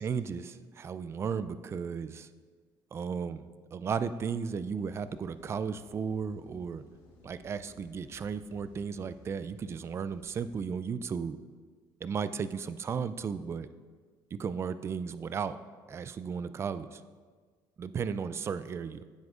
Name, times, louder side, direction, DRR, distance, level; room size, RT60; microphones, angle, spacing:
voice 1, 0.0-2.3 2.9-3.4 3.7-6.8 7.2-11.4 12.0-13.7 14.3-15.6 15.9-17.0 17.8-19.0, right 6 dB, 30° right, 13 dB, 0.3 m, -35 dB
sound 1, 4.8-10.7, left 3 dB, 75° left, 2.1 m, -58 dB
14.5 x 7.8 x 2.5 m, 1.5 s
cardioid pair, 130°, 9 cm